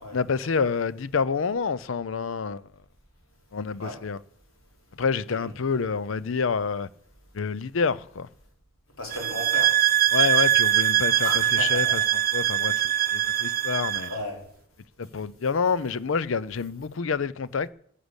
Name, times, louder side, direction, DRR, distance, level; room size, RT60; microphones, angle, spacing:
voice 1, 0.1-2.7 3.5-4.2 4.9-6.9 7.3-8.3 10.1-14.1 15.0-17.7, left 5 dB, 65° left, 0.5 m, -28 dB
voice 2, 9.0-9.7 11.2-12.0 14.0-14.4, left 1 dB, 85° left, 4.2 m, -35 dB
sound 1, 9.1-14.2, right 12 dB, 45° right, 0.8 m, -22 dB
11.5 x 10.5 x 8.1 m
head